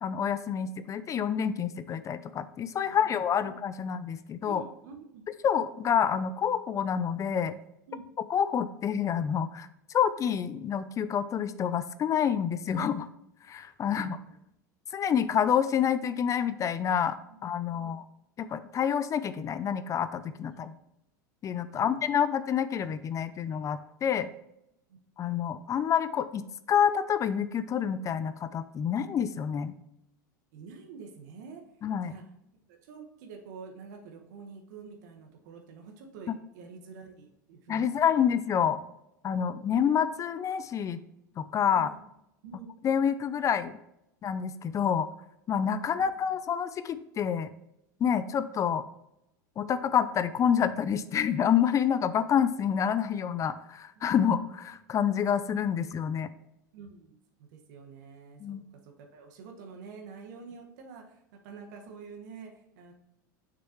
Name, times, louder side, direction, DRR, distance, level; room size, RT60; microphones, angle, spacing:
voice 1, 0.0-4.6 5.4-7.5 8.3-9.7 9.9-13.1 13.5-14.2 14.9-17.2 17.4-18.0 18.4-20.7 21.4-24.3 25.2-29.7 31.8-32.1 37.7-38.8 39.2-41.0 41.4-41.9 42.8-43.8 44.2-45.1 45.5-47.5 48.0-48.8 49.6-56.3 58.4-58.6, left 8 dB, 30° left, 14 dB, 0.5 m, -28 dB
voice 2, 2.8-3.1 3.4-3.5 4.5-5.2 7.9-8.1 13.8-14.3 17.7-17.9 20.5-20.7 21.7-22.0 24.9-25.0 30.5-31.6 32.0-32.2 32.7-38.1 41.7-42.0 42.4-42.7 45.9-46.4 54.0-54.1 56.7-62.9, right 5 dB, 65° right, 3 dB, 1.5 m, -47 dB
6.8 x 6.3 x 3.0 m, 0.83 s
hypercardioid pair, 85°, 10 cm